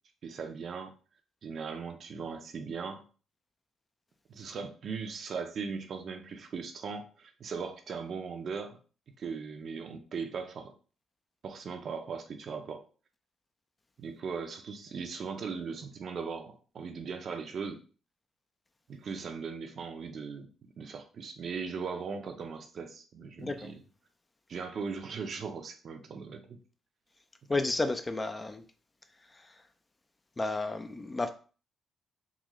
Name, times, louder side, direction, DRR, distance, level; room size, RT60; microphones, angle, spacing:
voice 1, 0.2-0.9 1.4-3.0 4.3-8.8 9.2-10.7 11.4-12.9 14.0-17.8 18.9-20.5 20.8-23.7 24.5-26.6, right 5 dB, 55° right, 0.6 m, -39 dB
voice 2, 23.4-23.7 27.5-28.6 29.3-29.6 30.4-31.3, left 2 dB, 20° left, 0.4 m, -32 dB
3.6 x 2.4 x 3.1 m
cardioid pair, 90°, 0 cm